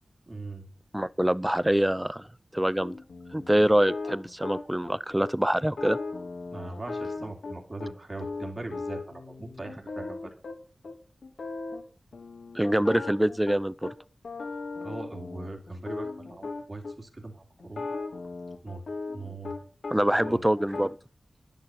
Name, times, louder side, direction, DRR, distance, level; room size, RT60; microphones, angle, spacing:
voice 1, 0.3-0.7 6.5-10.3 14.8-17.9 18.6-18.8 19.1-19.5 20.1-20.4, right 2 dB, 40° right, 3.0 m, -40 dB
voice 2, 0.9-2.3 2.5-3.0 3.3-6.0 12.5-13.9 19.9-21.0, right 1 dB, 10° right, 0.5 m, -25 dB
sound 1, 2.8-4.9 5.2-5.3 5.6-7.9 8.2-10.5 10.8-10.9 11.2-11.8 12.1-13.9 14.2-16.9 17.6-19.9 20.2-20.8, left 3 dB, 80° left, 3.2 m, -37 dB
10.5 x 10.5 x 5.8 m
wide cardioid pair, 65°, 0 cm